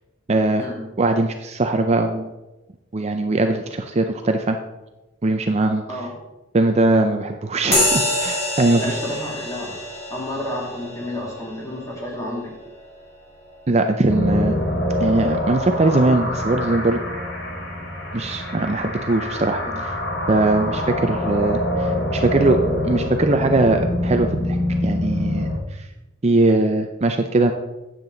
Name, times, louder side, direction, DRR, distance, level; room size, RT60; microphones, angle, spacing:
voice 1, 0.3-0.7 1.0-2.3 2.9-4.6 5.2-5.8 6.5-9.0 13.7-14.6 15.0-17.0 18.1-19.9 20.3-22.6 22.8-24.6 24.8-25.9 26.2-27.5, right 2 dB, 35° right, 5 dB, 0.5 m, -20 dB
sound 1, 7.7-15.6, left 1 dB, 30° left, 2.6 m, -28 dB
voice 2, 8.7-9.7 10.1-12.5 19.6-19.7 21.2-21.3, left 1 dB, 15° left, -3 dB, 2.4 m, -31 dB
sound 2, 14.1-25.6, left 1 dB, 55° left, 1.9 m, -25 dB
9.4 x 7.6 x 3.9 m, 1.0 s
head